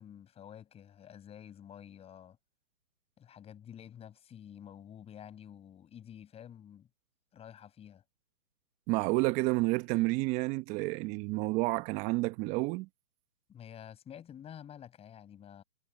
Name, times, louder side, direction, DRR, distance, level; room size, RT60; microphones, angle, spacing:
voice 1, 0.0-2.4 3.2-6.9 7.3-8.0 13.5-15.6, left 9 dB, 15° left, 5.9 m, -50 dB
voice 2, 8.9-12.9, right 22 dB, 15° right, 1.0 m, -30 dB
hypercardioid pair, 145°, 46 cm